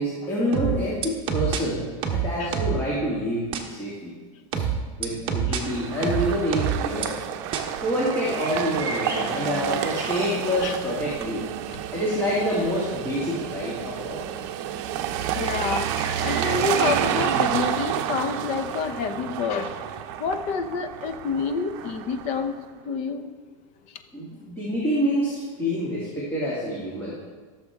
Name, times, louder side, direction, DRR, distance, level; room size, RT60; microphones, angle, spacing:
voice 1, 0.0-4.2 4.5-4.6 5.0-7.2 7.8-11.5 11.9-14.3 24.1-27.2, equal, 15° left, -7 dB, 2.3 m, -27 dB
sound 1, 0.5-1.6 2.0-2.8 3.5-3.6 4.5-5.6 6.0-7.1 7.5-7.6, right 7 dB, 30° right, 1.2 m, -25 dB
sound 2, 5.6-22.6, right 10 dB, 55° right, 0.7 m, -30 dB
sound 3, 8.1-10.9 15.3-18.4, right 2 dB, 15° right, 2.8 m, -36 dB
voice 2, 15.2-15.9 16.2-19.9 20.2-22.5 22.8-23.3 23.9-24.0, left 5 dB, 40° left, 8 dB, 0.9 m, -28 dB
15.5 x 6.9 x 3.6 m, 1.4 s
supercardioid pair, 150°, 17 cm